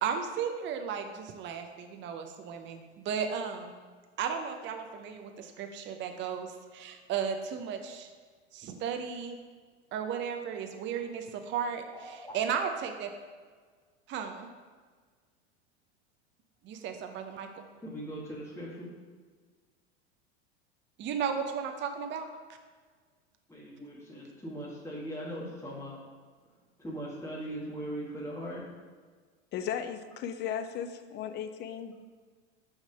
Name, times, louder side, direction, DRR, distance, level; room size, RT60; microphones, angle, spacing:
voice 1, 0.0-3.7 4.2-8.1 8.5-9.4 9.9-13.1 14.1-14.5 16.6-17.7 21.0-22.3, right 7 dB, 35° right, 6 dB, 0.6 m, -35 dB
voice 2, 11.9-12.3 17.8-18.9 23.5-26.0 26.8-28.6, equal, 10° left, -6 dB, 1.6 m, -40 dB
voice 3, 29.5-32.0, left 8 dB, 30° left, 10 dB, 0.4 m, -36 dB
6.1 x 3.7 x 5.4 m, 1.5 s
hypercardioid pair, 90°, 34 cm